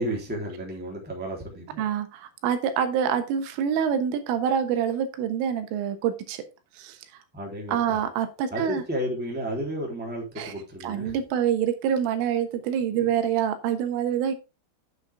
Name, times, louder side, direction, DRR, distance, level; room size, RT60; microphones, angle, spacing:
voice 1, 0.0-1.9 7.3-8.0 8.5-11.1 12.9-13.1, equal, ahead, -1 dB, 2.5 m, -32 dB
voice 2, 1.8-6.4 6.8-7.0 7.7-8.8 10.4-10.5 10.8-14.4, right 8 dB, 85° right, 8 dB, 3.7 m, -26 dB
8.9 x 8.3 x 3.6 m, 0.27 s
omnidirectional pair, 5.6 m